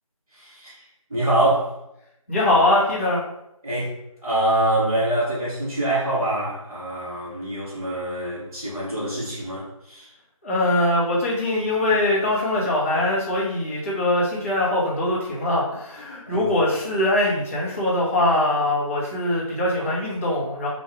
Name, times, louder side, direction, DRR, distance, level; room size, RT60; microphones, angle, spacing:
voice 1, 0.3-0.8 1.1-1.7 3.6-3.9 4.2-10.1 16.2-16.5, right 1 dB, 10° right, -18 dB, 1.4 m, -25 dB
voice 2, 2.3-3.2 10.4-20.7, left 1 dB, 25° left, -8 dB, 1.1 m, -22 dB
4.4 x 2.6 x 3.5 m, 0.82 s
figure-of-eight pair, 170°, 18 cm